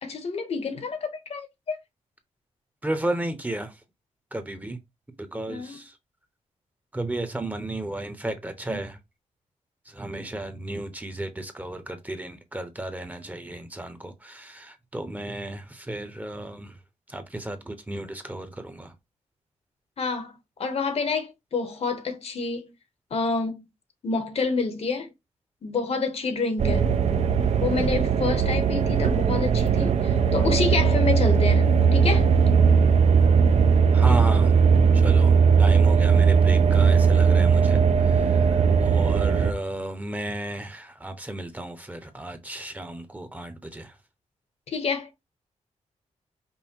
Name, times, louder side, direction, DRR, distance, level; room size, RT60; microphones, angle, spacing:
voice 1, 0.0-1.8 5.5-5.8 20.0-20.3 20.6-22.7 23.1-23.6 24.0-25.1 25.6-26.9 27.6-32.2 44.7-45.2, left 4 dB, 55° left, 1.1 m, -28 dB
voice 2, 2.8-3.8 4.3-4.8 5.2-6.0 6.9-9.0 9.8-16.8 17.1-18.9 33.9-34.6 34.9-44.0, right 1 dB, 10° right, 0.9 m, -34 dB
sound 1, 26.6-39.5, right 6 dB, 60° right, 0.8 m, -19 dB
5.5 x 2.2 x 4.4 m
cardioid pair, 105°, 13 cm